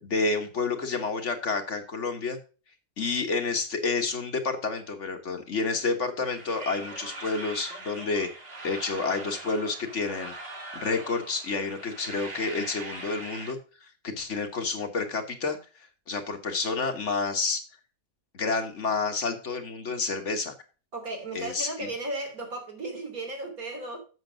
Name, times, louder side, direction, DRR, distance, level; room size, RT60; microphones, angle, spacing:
voice 1, 0.0-2.4 3.0-8.3 8.6-10.3 10.7-15.6 16.1-17.6 18.3-20.5 21.3-21.9, left 4 dB, 55° left, 1.7 m, -29 dB
sound 1, 6.3-13.5, right 2 dB, 45° right, 1.8 m, -41 dB
voice 2, 20.9-24.0, right 2 dB, 85° right, 3.5 m, -35 dB
8.1 x 6.9 x 5.0 m
omnidirectional pair, 1.5 m